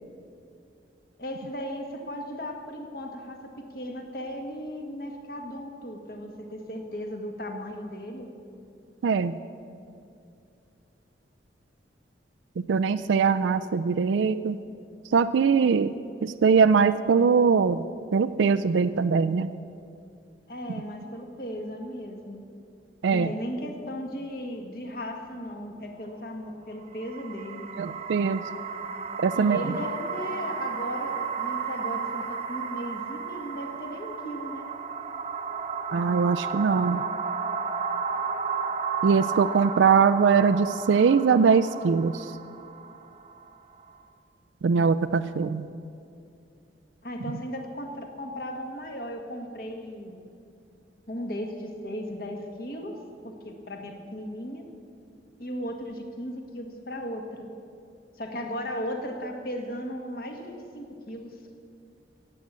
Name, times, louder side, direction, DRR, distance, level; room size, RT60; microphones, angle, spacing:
voice 1, 1.2-8.3 20.5-22.4 23.1-27.7 29.3-34.7 47.0-50.2 51.1-54.7 55.4-57.5 58.2-61.4, equal, 50° left, 3 dB, 1.6 m, -36 dB
voice 2, 9.0-9.4 12.7-14.6 15.1-15.9 16.2-17.8 18.1-19.5 23.0-23.3 27.8-28.4 29.2-29.6 35.9-37.0 39.0-42.3 44.6-45.7, right 5 dB, 85° right, 13 dB, 0.4 m, -22 dB
sound 1, 26.8-44.0, right 5 dB, 35° right, 0.7 m, -33 dB
15.5 x 8.5 x 7.5 m, 2.5 s
head